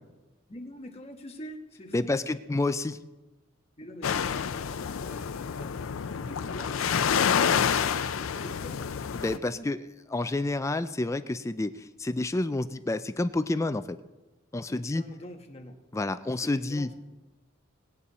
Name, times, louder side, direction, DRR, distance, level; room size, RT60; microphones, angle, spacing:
voice 1, 0.5-2.2 3.8-5.7 6.1-8.9 9.3-9.7 14.7-15.8 16.3-16.9, equal, 30° left, 3 dB, 1.3 m, -45 dB
voice 2, 1.9-3.0 9.1-9.8 10.1-14.0 14.5-15.0 15.9-16.9, left 2 dB, 15° left, 11 dB, 0.3 m, -29 dB
sound 1, 4.0-9.4, left 7 dB, 75° left, 0.5 m, -28 dB
19.5 x 8.4 x 4.1 m, 1.1 s
head